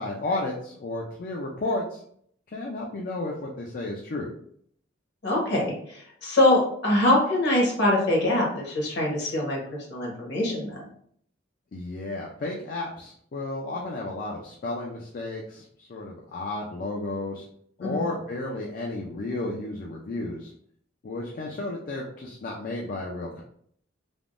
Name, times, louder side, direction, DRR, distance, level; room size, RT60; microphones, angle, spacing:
voice 1, 0.0-2.0 2.5-4.3 11.7-17.4 17.8-20.5 21.0-23.4, left 2 dB, 45° left, -2 dB, 0.4 m, -32 dB
voice 2, 5.2-9.6 9.9-10.8 17.8-18.0, left 1 dB, 65° left, -2 dB, 1.1 m, -23 dB
3.4 x 2.1 x 2.5 m, 0.64 s
head